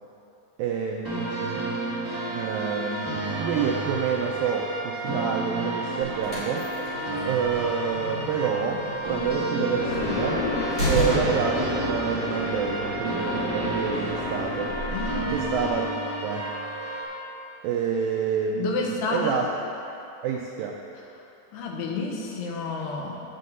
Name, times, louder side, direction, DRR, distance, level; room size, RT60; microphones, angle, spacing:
voice 1, 0.6-1.7 2.3-6.7 7.3-10.4 10.8-14.8 15.3-15.9 16.2-16.4 17.6-19.5 20.2-20.8, right 6 dB, 85° right, 0 dB, 2.0 m, -28 dB
sound 1, 1.0-17.0, right 2 dB, 40° right, 1.4 m, -31 dB
sound 2, 6.0-11.6, equal, 30° left, 2.6 m, -32 dB
sound 3, 9.7-15.8, left 2 dB, 70° left, 3.2 m, -31 dB
voice 2, 14.9-15.8 18.6-19.4 21.5-23.2, left 3 dB, 90° left, 0 dB, 3.1 m, -30 dB
8.4 x 5.4 x 7.9 m, 2.8 s
omnidirectional pair, 4.6 m